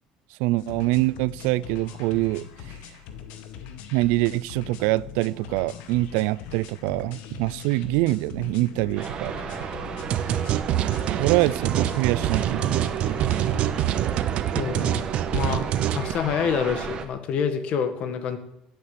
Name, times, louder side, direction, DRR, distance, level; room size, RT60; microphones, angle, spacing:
voice 1, 0.4-2.5 3.9-9.3 11.2-13.8, right 19 dB, 85° right, 0.5 m, -25 dB
sound 1, 0.6-13.8, left 8 dB, 70° left, 1.8 m, -41 dB
sound 2, 9.0-17.1, right 6 dB, 35° right, 1.5 m, -34 dB
sound 3, 10.1-16.1, right 11 dB, 50° right, 0.8 m, -26 dB
voice 2, 14.6-15.1 15.3-15.6 15.9-18.4, left 7 dB, 50° left, 1.9 m, -27 dB
16.0 x 8.6 x 8.5 m
cardioid pair, 160°, 3 cm